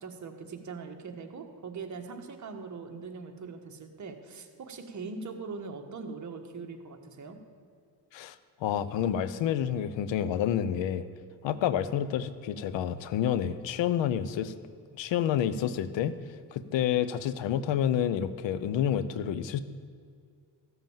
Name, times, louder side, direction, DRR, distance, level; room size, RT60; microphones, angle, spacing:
voice 1, 0.0-7.4, right 4 dB, 40° right, 4 dB, 1.5 m, -41 dB
voice 2, 8.6-11.0 11.4-14.5 15.0-16.2 16.5-19.6, left 9 dB, 85° left, 15 dB, 0.8 m, -29 dB
14.5 x 7.9 x 7.3 m, 2.3 s
cardioid pair, 120°, 43 cm